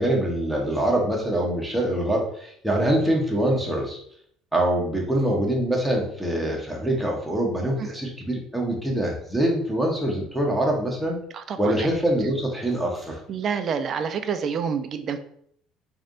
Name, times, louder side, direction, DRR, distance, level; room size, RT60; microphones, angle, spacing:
voice 1, 0.0-4.0 4.5-11.2 11.6-13.2, right 1 dB, ahead, -2 dB, 1.1 m, -24 dB
voice 2, 11.3-11.9 13.3-15.2, right 6 dB, 50° right, 10 dB, 0.5 m, -28 dB
3.2 x 2.7 x 3.8 m, 0.64 s
supercardioid pair, 75°, 0 cm